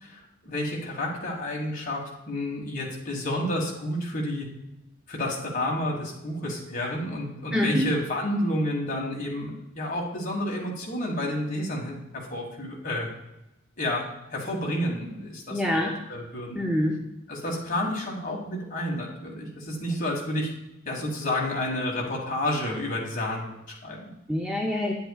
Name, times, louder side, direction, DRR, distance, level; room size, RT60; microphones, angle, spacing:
voice 1, 0.0-4.5 5.1-13.1 13.8-14.0 14.3-16.6 17.3-20.5 20.8-24.1, left 1 dB, 40° left, -1 dB, 1.6 m, -30 dB
voice 2, 7.5-7.9 15.5-15.9 16.6-17.0 24.3-24.9, left 1 dB, 5° right, -1 dB, 0.6 m, -25 dB
9.4 x 7.9 x 2.3 m, 0.89 s
head